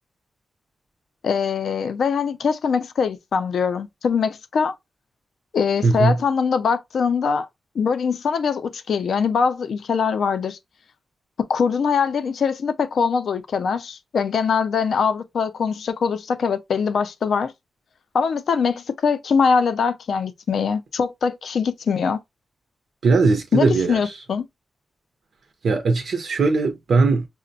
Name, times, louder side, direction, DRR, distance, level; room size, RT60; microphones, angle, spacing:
voice 1, 1.2-4.7 5.5-7.5 7.8-10.6 11.5-17.5 18.1-22.2 23.5-24.4, left 6 dB, 65° left, 0.4 m, -22 dB
voice 2, 5.8-6.2 23.0-24.2 25.6-27.3, right 3 dB, 60° right, 0.5 m, -19 dB
5.7 x 2.1 x 2.6 m
wide cardioid pair, 180°, 0 cm